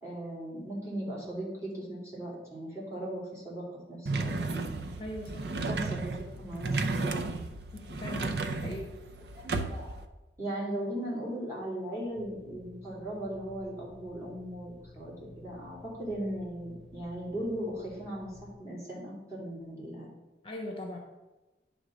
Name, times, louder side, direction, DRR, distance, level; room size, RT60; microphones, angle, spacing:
voice 1, 0.0-4.7 5.7-7.1 9.3-10.0 10.4-20.1, right 1 dB, 15° right, -5 dB, 2.7 m, -38 dB
sound 1, 4.1-10.1, right 3 dB, 65° right, 0.6 m, -33 dB
voice 2, 5.0-5.7 7.7-8.9 20.4-21.0, left 1 dB, 30° left, 1 dB, 0.9 m, -40 dB
sound 2, 12.1-18.5, left 2 dB, ahead, 1.7 m, -52 dB
10.0 x 3.6 x 6.3 m, 1.1 s
head